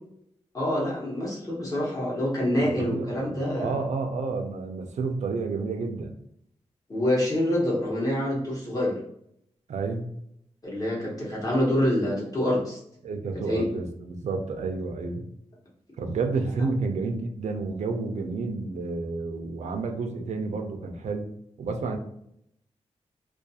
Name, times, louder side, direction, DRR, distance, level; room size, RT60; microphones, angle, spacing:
voice 1, 0.5-3.8 6.9-9.0 10.6-12.8 13.5-13.7, left 1 dB, 30° left, -4 dB, 0.9 m, -26 dB
voice 2, 2.6-6.2 9.7-10.1 11.2-11.3 13.0-15.2 16.0-21.3 21.6-22.0, right 4 dB, 75° right, 3 dB, 0.4 m, -30 dB
2.4 x 2.3 x 2.7 m, 0.73 s
wide cardioid pair, 170°, 12 cm